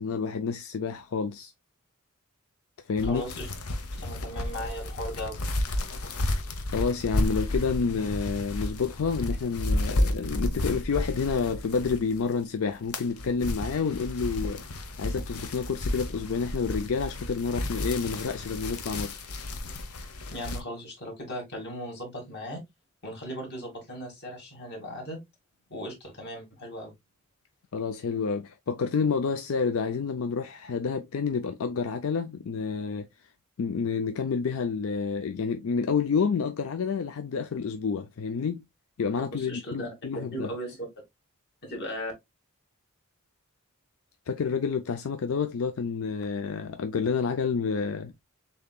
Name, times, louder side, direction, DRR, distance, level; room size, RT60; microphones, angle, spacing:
voice 1, 0.0-1.5 2.9-3.3 6.7-14.6 15.0-19.2 27.7-33.1 33.6-38.6 39.0-40.5 44.3-48.1, left 5 dB, 70° left, 0.4 m, -29 dB
sound 1, 3.0-12.3 12.7-20.6, left 1 dB, 90° left, 0.8 m, -32 dB
voice 2, 3.0-3.5 4.0-5.4 20.3-22.6 23.0-25.2 25.7-26.9 39.3-40.9 41.6-42.1, equal, 50° left, 2.2 m, -37 dB
6.7 x 2.8 x 2.3 m
head